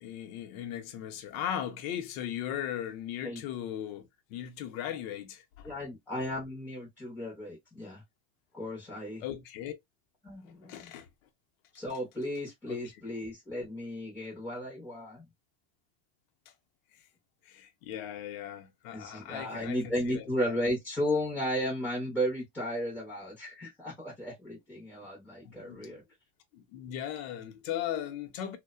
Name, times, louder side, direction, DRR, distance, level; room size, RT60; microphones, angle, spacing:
voice 1, 0.0-5.7 9.2-9.7 10.6-11.1 12.7-12.8 17.5-20.3 25.4-26.0 26.5-28.6, left 10 dB, 65° left, 0.7 m, -38 dB
voice 2, 5.6-8.0 8.5-9.2 10.2-10.9 11.7-15.2 18.9-26.0, equal, 5° left, 0.4 m, -34 dB
2.7 x 2.1 x 2.2 m
supercardioid pair, 165°, 45 cm